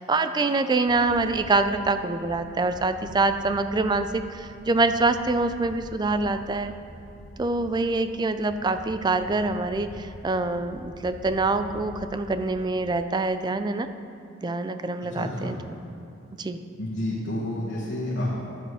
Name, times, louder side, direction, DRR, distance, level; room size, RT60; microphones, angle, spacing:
voice 1, 0.0-6.7 7.4-13.9 14.4-15.6 16.4-16.6, right 3 dB, 20° right, 9 dB, 0.4 m, -25 dB
sound 1, 0.8-12.9, equal, 45° left, 0.8 m, -45 dB
voice 2, 15.1-15.6 16.8-18.3, left 1 dB, 65° left, -8 dB, 1.7 m, -30 dB
11.0 x 7.7 x 4.9 m, 2.5 s
head